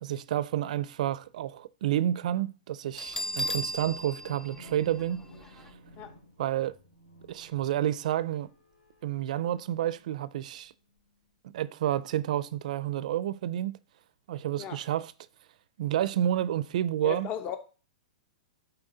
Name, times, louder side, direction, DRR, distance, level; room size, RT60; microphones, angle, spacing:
voice 1, 0.0-5.2 5.6-5.7 6.4-6.7 7.3-8.5 9.0-10.7 11.5-13.8 14.3-15.1 15.8-17.3, right 12 dB, 65° right, 0.5 m, -30 dB
sound 1, 2.9-10.4 10.9-11.0, left 1 dB, 85° left, 2.8 m, -54 dB
Bell, 3.0-5.7, equal, 10° left, 0.5 m, -36 dB
voice 2, 17.0-17.6, left 9 dB, 35° left, 1.0 m, -35 dB
11.0 x 4.5 x 3.9 m
hypercardioid pair, 130°, 4 cm